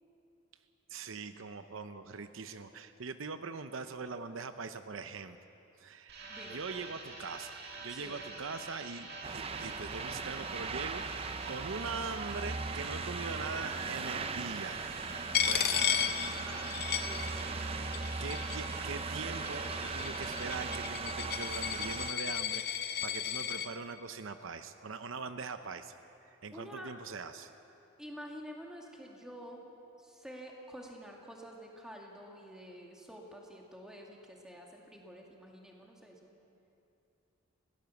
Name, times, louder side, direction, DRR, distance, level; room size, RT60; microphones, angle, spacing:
voice 1, 0.9-5.4 5.8-9.1 9.3-11.0 11.4-14.8 15.4-16.1 18.2-22.6 23.0-26.0 26.2-27.5, right 4 dB, 75° right, 9 dB, 0.8 m, -42 dB
sound 1, 6.1-20.9, right 3 dB, 50° right, 2.6 m, -46 dB
voice 2, 6.3-6.7 7.9-8.2 15.5-16.0 16.3-16.7 17.0-17.5 26.5-26.9 28.0-29.7 30.0-36.3, equal, 5° right, -1 dB, 2.2 m, -49 dB
sound 2, 9.2-22.1, right 4 dB, 30° right, 0.6 m, -39 dB
Coin (dropping), 15.3-17.7 17.9-18.8 19.5-23.7, left 9 dB, 50° left, 0.9 m, -34 dB
21.5 x 17.0 x 7.1 m, 2.8 s
head